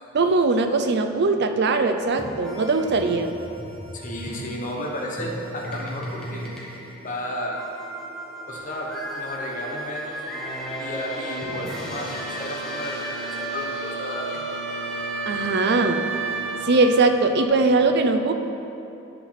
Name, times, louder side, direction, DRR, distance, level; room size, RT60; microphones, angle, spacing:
voice 1, 0.1-3.3 15.3-16.1 16.6-18.3, right 3 dB, 55° right, 7 dB, 0.5 m, -20 dB
sound 1, 2.0-17.4, right 2 dB, 5° left, 1.1 m, -33 dB
voice 2, 3.9-6.5 7.0-7.6 8.5-10.1 10.8-12.1 12.4-14.4, left 1 dB, 40° left, -2 dB, 1.1 m, -33 dB
11.0 x 4.2 x 5.8 m, 2.8 s
head